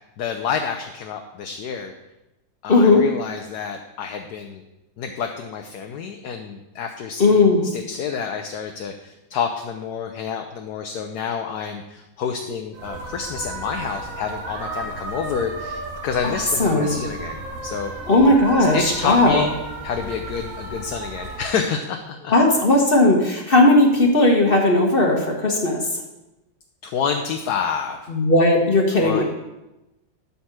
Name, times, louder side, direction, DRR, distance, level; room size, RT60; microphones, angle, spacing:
voice 1, 0.2-1.9 2.6-4.6 5.0-17.9 18.7-19.5 19.8-22.3 26.8-28.0 29.0-29.2, left 6 dB, 65° left, 4 dB, 1.1 m, -28 dB
voice 2, 2.7-3.0 7.2-7.7 16.2-16.3 16.6-16.9 18.1-19.4 22.3-25.8 28.1-29.2, left 2 dB, 35° left, 0 dB, 1.2 m, -16 dB
sound 1, 12.7-21.4, right 3 dB, 50° right, 1.4 m, -34 dB
12.0 x 4.3 x 6.0 m, 0.97 s
omnidirectional pair, 2.1 m